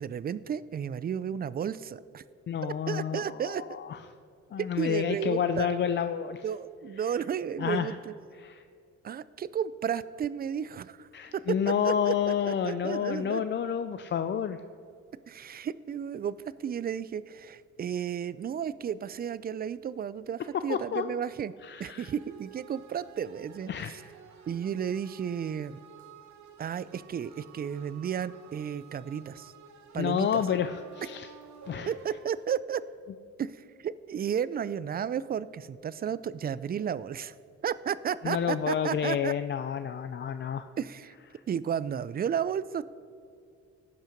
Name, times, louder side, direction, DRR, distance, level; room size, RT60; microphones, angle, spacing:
voice 1, 0.0-2.2 2.6-3.6 4.6-5.7 6.4-8.1 9.0-13.4 15.3-21.5 21.8-24.0 24.5-25.8 26.6-29.5 29.9-30.4 31.9-32.8 33.4-37.3 37.6-39.3 40.8-41.1 41.5-42.8, right 8 dB, 30° right, 17 dB, 0.4 m, -33 dB
voice 2, 2.5-4.0 4.5-6.4 7.0-7.1 7.6-7.9 8.4-8.6 11.1-14.6 20.7-21.2 21.6-22.1 23.7-23.9 30.0-31.3 31.7-31.9 38.2-40.7 41.3-41.4, left 8 dB, 40° left, 10 dB, 0.4 m, -30 dB
sound 1, 22.0-32.6, right 6 dB, 70° right, 1.2 m, -52 dB
16.0 x 5.6 x 5.2 m, 2.4 s
cardioid pair, 90°, 30 cm